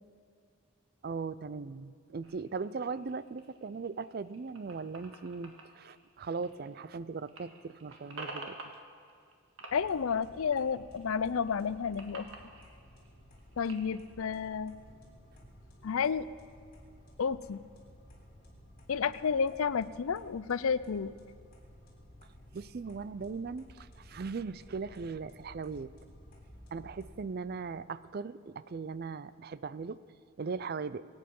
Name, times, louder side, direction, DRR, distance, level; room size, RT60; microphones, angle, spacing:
voice 1, 1.0-8.6 22.5-25.9 26.7-30.0 30.4-31.0, right 4 dB, 45° right, 17 dB, 0.4 m, -39 dB
sound 1, 2.2-7.0 7.2-9.3 9.6-11.0 11.4-14.0, right 2 dB, 65° right, 1.8 m, -49 dB
voice 2, 9.7-12.3 13.6-14.7 15.8-16.3 17.2-17.6 18.9-21.1, left 6 dB, 75° left, 17 dB, 0.5 m, -31 dB
sound 2, 9.7-27.1, equal, 40° left, 3.6 m, -55 dB
24.0 x 9.0 x 5.4 m, 2.3 s
head